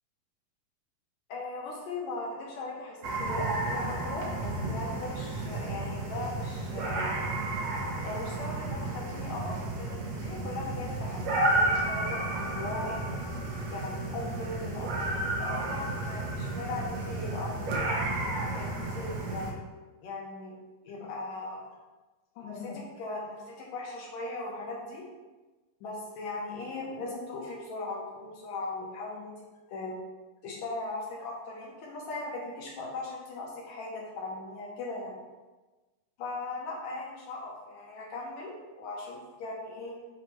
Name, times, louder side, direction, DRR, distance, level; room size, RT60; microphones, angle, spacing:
voice 1, 1.3-7.2 8.0-13.1 13.7-18.0 18.5-19.6 20.0-20.6 20.8-21.6 22.3-25.0 25.8-29.3 29.7-30.0 30.4-35.2 36.2-40.0, left 2 dB, 75° left, -3 dB, 1.6 m, -38 dB
sound 1, 3.0-19.5, right 2 dB, 85° right, 1.5 m, -32 dB
7.7 x 3.1 x 4.4 m, 1.2 s
omnidirectional pair, 4.4 m